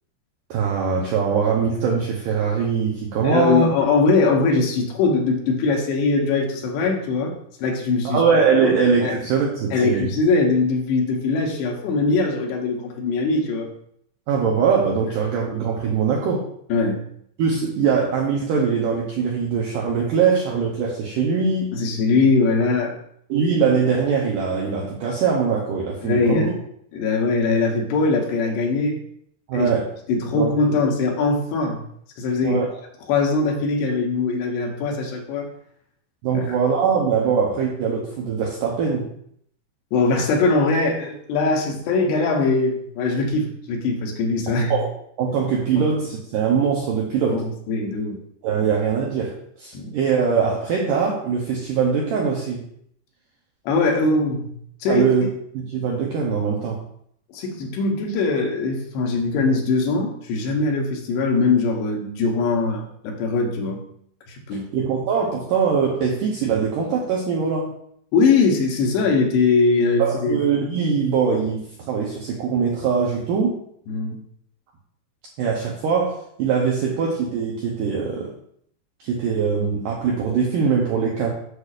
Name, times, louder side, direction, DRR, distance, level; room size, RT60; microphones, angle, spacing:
voice 1, 0.5-3.7 8.0-10.1 14.3-16.5 17.4-21.7 23.3-26.5 29.5-30.0 30.3-30.5 32.4-32.7 36.2-39.1 44.7-44.9 45.2-47.4 48.4-52.7 54.9-55.3 55.5-56.8 64.5-67.7 70.0-73.6 75.4-78.4 79.0-81.3, right 6 dB, 80° right, -2 dB, 1.9 m, -22 dB
voice 2, 3.2-7.3 7.6-8.2 8.6-8.7 9.0-9.1 9.7-13.7 16.7-17.0 21.7-23.0 26.0-26.5 26.9-29.0 29.5-29.7 30.1-31.8 32.2-32.6 33.1-35.5 36.3-36.6 39.9-44.7 47.2-48.2 49.7-50.0 53.7-54.5 54.8-55.3 57.3-63.8 64.3-64.7 68.1-70.4 73.9-74.2, left 3 dB, 80° left, 1 dB, 3.1 m, -21 dB
8.2 x 6.5 x 2.4 m, 0.67 s
omnidirectional pair, 4.8 m